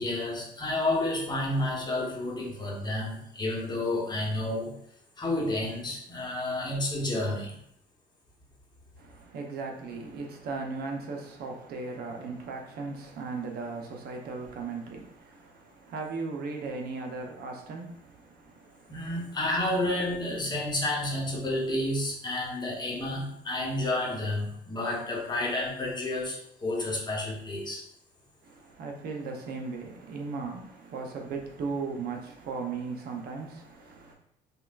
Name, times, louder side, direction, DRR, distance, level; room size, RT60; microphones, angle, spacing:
voice 1, 0.0-4.8 5.2-7.6 18.9-27.8, left 1 dB, 25° left, 1.0 m, -30 dB
voice 2, 9.0-19.1 28.4-34.1, right 4 dB, 65° right, 0.8 m, -37 dB
5.4 x 2.3 x 2.4 m
cardioid pair, 110°, 17 cm